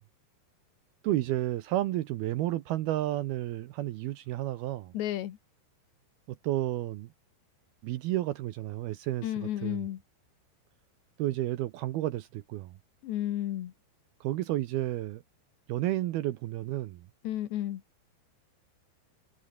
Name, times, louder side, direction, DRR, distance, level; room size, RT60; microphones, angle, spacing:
voice 1, 1.0-4.9 6.3-7.1 7.8-9.9 11.2-12.7 14.2-15.2 15.7-17.1, right 15 dB, 75° right, 2.5 m, -31 dB
voice 2, 4.9-5.4 9.2-10.0 13.0-13.7 17.2-17.8, left 13 dB, 75° left, 3.7 m, -32 dB
omnidirectional pair, 5.2 m